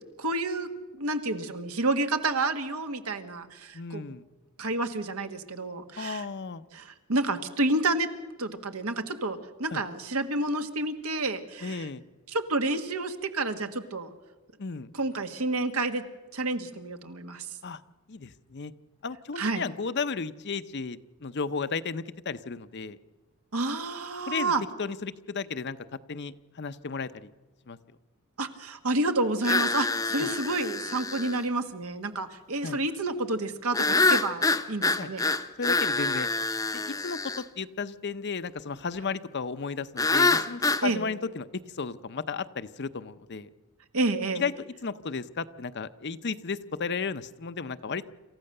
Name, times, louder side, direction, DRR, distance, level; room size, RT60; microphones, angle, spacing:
voice 1, 0.2-0.7 0.9-4.0 4.6-6.2 6.7-8.1 8.4-11.9 12.3-14.1 14.9-16.0 16.3-17.5 19.3-19.7 23.5-24.6 28.4-35.2 40.8-41.0 43.9-44.4, right 2 dB, 80° right, 8 dB, 1.6 m, -29 dB
voice 2, 3.7-4.2 6.0-6.6 9.7-9.8 11.6-12.0 14.6-14.9 17.6-17.8 18.1-18.7 19.0-23.0 24.3-24.5 24.8-25.8 26.1-27.3 27.7-27.8 30.2-30.3 32.6-32.8 33.9-34.1 35.0-35.1 35.6-36.3 36.7-41.5 41.7-43.5 44.4-44.5 44.8-48.1, left 5 dB, 50° left, 12 dB, 0.7 m, -34 dB
sound 1, 29.4-31.4 33.7-37.4 40.0-40.9, left 3 dB, 15° left, 0.8 m, -26 dB
27.0 x 14.5 x 6.7 m, 1.2 s
head